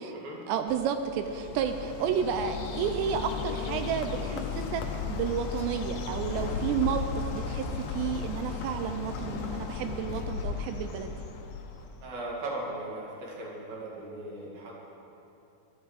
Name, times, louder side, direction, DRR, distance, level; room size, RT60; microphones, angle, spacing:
voice 1, 0.5-7.1 7.3-11.2, right 8 dB, 80° right, 7 dB, 2.7 m, -31 dB
Bird, 0.7-12.1, left 5 dB, 75° left, 2.0 m, -35 dB
voice 2, 12.0-14.7, right 2 dB, 60° right, -4 dB, 4.0 m, -38 dB
16.0 x 13.0 x 4.1 m, 2.8 s
omnidirectional pair, 5.1 m